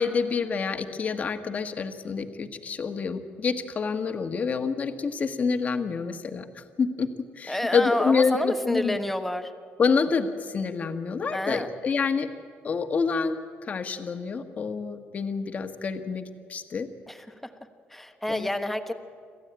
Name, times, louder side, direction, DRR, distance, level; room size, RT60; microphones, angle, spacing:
voice 1, 0.0-9.0 9.8-12.3 12.6-13.4 13.6-16.2 16.5-16.9 18.3-18.5, left 5 dB, 35° left, 7 dB, 1.4 m, -27 dB
voice 2, 7.5-9.5 11.3-11.7 17.1-17.5 17.9-18.9, left 1 dB, 5° left, 7 dB, 1.2 m, -29 dB
27.0 x 14.5 x 8.9 m, 2.1 s
cardioid pair, 135°, 4 cm